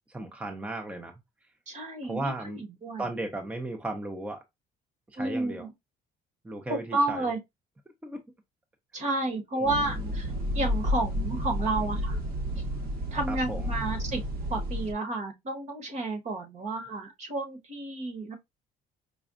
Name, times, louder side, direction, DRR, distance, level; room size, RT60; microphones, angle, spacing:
voice 1, 0.1-1.1 2.0-2.6 3.0-4.4 5.1-5.7 6.4-7.3 8.0-8.2 9.6-10.1 11.8-12.0 13.3-13.7, right 2 dB, 10° right, 0.6 m, -36 dB
voice 2, 1.7-3.1 5.2-5.7 6.7-7.4 8.9-12.2 13.1-14.2 14.5-18.4, right 2 dB, 45° right, 1.2 m, -31 dB
sound 1, 9.6-14.9, left 1 dB, 60° right, 1.3 m, -31 dB
5.0 x 2.3 x 2.4 m
cardioid pair, 110°, 17 cm